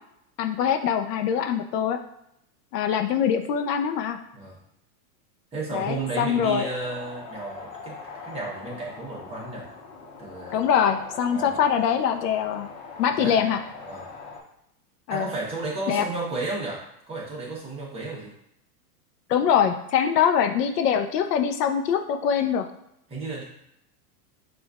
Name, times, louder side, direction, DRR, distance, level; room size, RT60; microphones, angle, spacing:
voice 1, 0.4-2.0 2.7-4.2 5.7-6.7 10.5-12.7 13.0-13.6 15.1-15.3 15.9-16.0 19.3-22.7, left 8 dB, 80° left, 7 dB, 0.6 m, -23 dB
voice 2, 5.5-9.7 10.2-10.6 11.3-11.6 13.1-13.4 13.8-14.1 15.1-18.3 23.1-23.4, right 3 dB, 15° right, -5 dB, 0.9 m, -33 dB
sound 1, 5.7-14.4, left 4 dB, 55° left, 1.0 m, -42 dB
6.2 x 2.5 x 2.3 m, 0.80 s
supercardioid pair, 145°, 47 cm